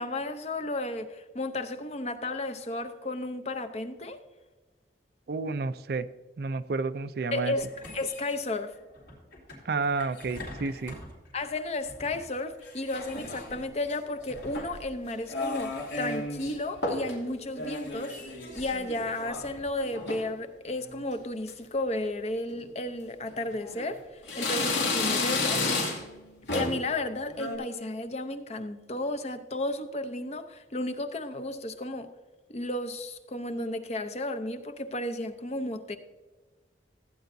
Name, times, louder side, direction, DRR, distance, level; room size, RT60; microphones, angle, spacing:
voice 1, 0.0-4.2 7.3-7.7 7.9-8.8 11.3-25.6 26.5-32.1 32.5-36.0, left 2 dB, 35° left, 8 dB, 0.7 m, -33 dB
voice 2, 5.3-6.1 6.4-7.5 9.6-11.0, right 4 dB, 60° right, 13 dB, 0.4 m, -30 dB
sound 1, 7.6-20.2, left 2 dB, 65° left, 4.0 m, -48 dB
sound 2, 12.9-13.7 14.3-14.9 15.3-16.5 16.8-17.2 17.5-19.5 19.8-20.3 20.8-21.1 21.5-21.6 22.5-22.7 23.3-23.9 24.3-26.2 26.5-26.9 27.3-27.6, left 3 dB, 80° left, 2.5 m, -32 dB
16.0 x 9.0 x 2.7 m, 1.2 s
head